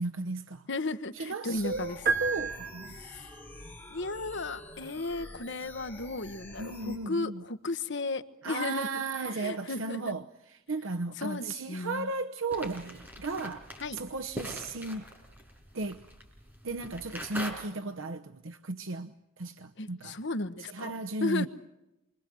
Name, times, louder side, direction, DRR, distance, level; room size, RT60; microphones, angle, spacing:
voice 1, 0.0-0.7 1.1-3.0 6.6-7.4 8.4-10.2 10.5-13.7 13.9-15.0 15.7-16.0 16.6-20.2 20.6-21.5, right 3 dB, 70° right, 0.9 m, -35 dB
voice 2, 0.7-2.0 3.0-3.3 3.9-10.1 11.2-12.1 13.8-14.0 19.8-20.9 21.2-21.5, left 3 dB, 60° left, 1.2 m, -35 dB
sound 1, 1.5-7.0, left 1 dB, 10° left, 6.7 m, -48 dB
sound 2, 2.1-3.4, right 5 dB, 45° right, 2.4 m, -31 dB
sound 3, 12.5-17.5, equal, 10° right, 5.7 m, -43 dB
28.0 x 24.0 x 7.7 m
head